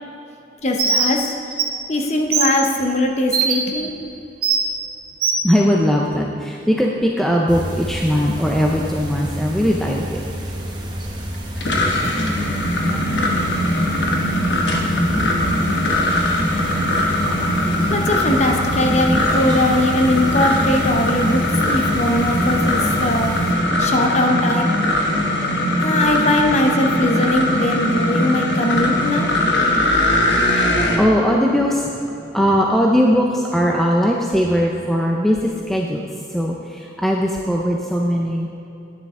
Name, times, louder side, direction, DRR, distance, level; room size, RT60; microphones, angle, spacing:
voice 1, 0.6-1.3 1.9-3.9 17.9-24.7 25.8-29.3, left 1 dB, 35° left, 2 dB, 0.7 m, -20 dB
Bird, 0.8-1.1 1.5-1.6 2.3-2.5 3.3-3.5 4.4-4.6 5.2-5.4, right 5 dB, 55° right, 1.3 m, -18 dB
voice 2, 5.4-10.2 12.9-13.1 22.7-22.8 30.5-36.0 36.3-38.5, equal, ahead, -1 dB, 0.5 m, -19 dB
sound 1, 7.5-23.5, equal, 25° right, 1.0 m, -30 dB
sound 2, 11.3-31.0, left 1 dB, 75° left, 1.2 m, -20 dB
10.5 x 9.3 x 3.6 m, 2.9 s
head